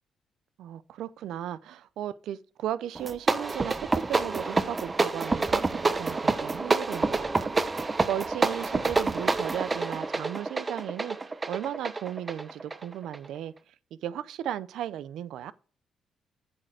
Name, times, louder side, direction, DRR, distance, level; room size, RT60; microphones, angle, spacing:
voice 1, 0.6-7.8 8.1-15.5, right 11 dB, 80° right, 0.6 m, -36 dB
sound 1, 2.9-13.3, right 3 dB, 25° right, 0.9 m, -28 dB
8.7 x 6.5 x 4.8 m
cardioid pair, 90°, 0 cm